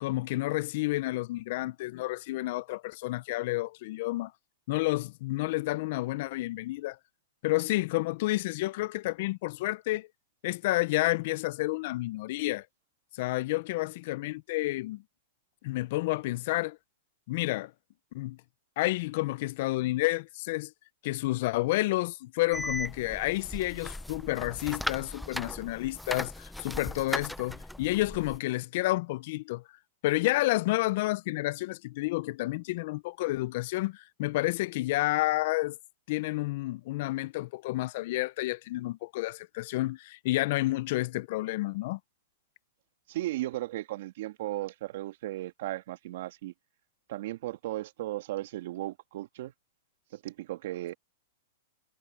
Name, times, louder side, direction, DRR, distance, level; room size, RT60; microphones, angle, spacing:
voice 1, 0.0-4.3 4.7-7.0 7.4-10.1 10.4-12.6 13.1-15.0 15.6-16.8 17.3-17.7 18.1-18.4 18.8-20.7 21.0-29.6 30.0-35.8 36.1-42.0, left 19 dB, 55° left, 0.6 m, -30 dB
sound 1, 22.5-28.4, left 1 dB, ahead, 0.5 m, -38 dB
voice 2, 43.1-46.5 47.1-49.5 50.1-50.9, right 15 dB, 60° right, 2.1 m, -36 dB
hypercardioid pair, 130°, 0 cm